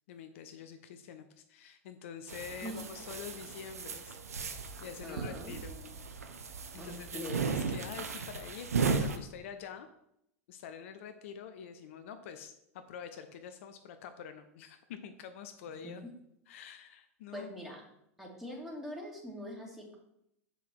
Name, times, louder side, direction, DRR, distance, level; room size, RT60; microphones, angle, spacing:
voice 1, 0.1-4.2 4.8-5.8 6.7-9.9 10.5-16.0 16.5-17.7, left 8 dB, 60° left, 8 dB, 0.6 m, -46 dB
sound 1, 2.3-9.2, right 5 dB, 80° right, 0.8 m, -36 dB
voice 2, 5.0-5.9 6.8-7.4 15.8-15.9 17.3-17.8 18.2-19.9, equal, 5° right, -2 dB, 2.4 m, -43 dB
7.4 x 5.3 x 4.5 m, 0.78 s
figure-of-eight pair, 90°, 8 cm